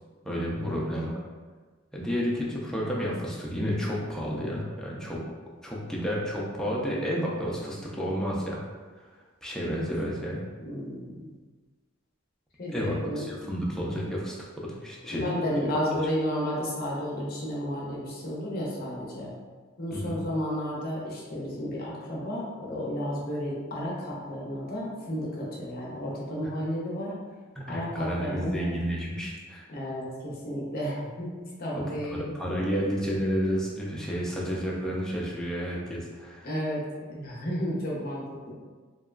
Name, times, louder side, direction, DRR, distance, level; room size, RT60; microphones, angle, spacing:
voice 1, 0.2-1.1 1.9-5.2 5.6-8.6 9.4-10.4 12.7-15.3 15.9-16.0 19.9-20.2 27.6-29.7 32.1-36.5, equal, 5° left, -4 dB, 0.4 m, -31 dB
voice 2, 10.6-11.4 12.6-13.2 15.1-19.3 19.8-27.1 27.7-28.7 29.7-32.4 36.4-38.5, equal, 50° left, -4 dB, 0.6 m, -32 dB
2.8 x 2.2 x 2.3 m, 1.4 s
head